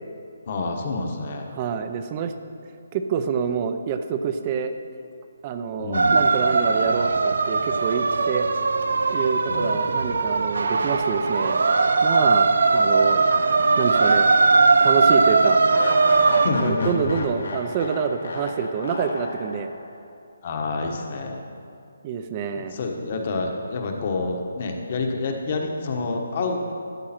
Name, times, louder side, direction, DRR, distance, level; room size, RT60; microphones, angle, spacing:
voice 1, 0.4-1.5 5.8-6.3 9.5-9.9 12.2-12.4 16.4-17.3 20.4-21.4 22.5-26.7, left 3 dB, 40° left, 3 dB, 1.3 m, -28 dB
voice 2, 1.5-2.3 2.9-4.7 5.4-8.5 9.1-11.6 12.0-13.3 13.8-14.3 14.8-15.6 16.6-19.7 22.0-22.8, right 6 dB, 30° right, 8 dB, 0.6 m, -27 dB
sound 1, 5.9-16.5, right 4 dB, 70° right, 0.6 m, -19 dB
sound 2, 13.1-14.4 14.7-14.8 15.7-20.0, left 3 dB, 75° left, 1.6 m, -34 dB
13.5 x 8.5 x 4.4 m, 2.5 s
hypercardioid pair, 160°, 0 cm